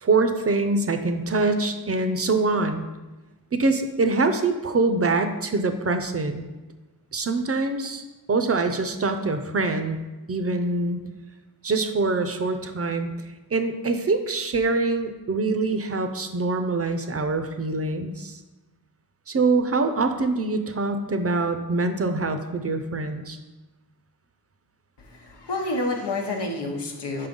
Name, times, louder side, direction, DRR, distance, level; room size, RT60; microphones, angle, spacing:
voice 1, 0.0-2.9 3.5-6.4 7.1-8.0 8.3-10.0 10.3-11.0 11.6-13.1 13.5-18.4 19.3-23.4, right 3 dB, 35° right, 7 dB, 0.5 m, -24 dB
voice 2, 25.0-27.3, left 2 dB, 90° left, 1 dB, 1.0 m, -29 dB
5.4 x 3.8 x 5.2 m, 1.1 s
wide cardioid pair, 80°, 40 cm